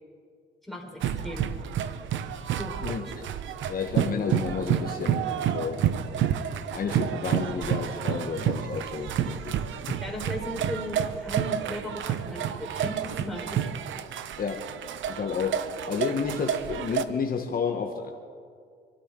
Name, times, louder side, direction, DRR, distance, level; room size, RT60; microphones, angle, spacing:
voice 1, 0.7-1.5 2.6-3.0 10.0-13.7, equal, ahead, -2 dB, 4.3 m, -37 dB
sound 1, 1.0-17.0, right 9 dB, 75° right, 0.8 m, -30 dB
voice 2, 2.8-3.2 3.7-5.3 5.5-5.9 6.7-9.6 9.9-10.0 14.4-14.7 15.1-18.1, left 6 dB, 45° left, 3 dB, 1.2 m, -31 dB
26.5 x 12.5 x 3.8 m, 2.2 s
cardioid pair, 90°, 20 cm